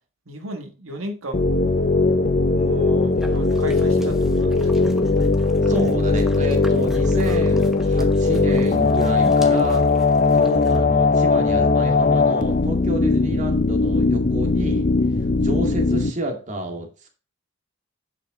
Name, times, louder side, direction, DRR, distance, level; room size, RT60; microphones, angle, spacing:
voice 1, 0.3-1.4 2.5-4.8, right 1 dB, 85° right, 1.7 m, -34 dB
sound 1, 1.3-16.1, left 3 dB, 40° left, 0.6 m, -19 dB
sound 2, 3.0-10.8, equal, ahead, 1.0 m, -41 dB
voice 2, 5.7-9.9 10.3-14.9 15.4-16.9, equal, 35° right, 2.0 m, -29 dB
10.0 x 6.0 x 3.8 m
head